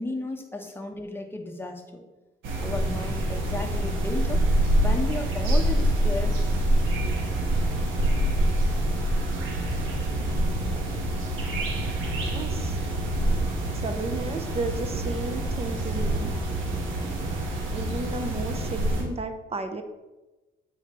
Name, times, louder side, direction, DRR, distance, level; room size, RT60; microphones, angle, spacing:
voice 1, 0.0-2.0 2.6-4.4 4.7-6.4 7.0-7.2, left 2 dB, 10° left, 3 dB, 1.0 m, -34 dB
sound 1, 2.4-19.0, right 1 dB, 80° right, 1.3 m, -26 dB
voice 2, 12.1-12.8 13.7-16.3 17.7-19.8, right 2 dB, 30° right, 7 dB, 0.7 m, -33 dB
7.8 x 4.7 x 3.1 m, 1.1 s
cardioid pair, 90°, 20 cm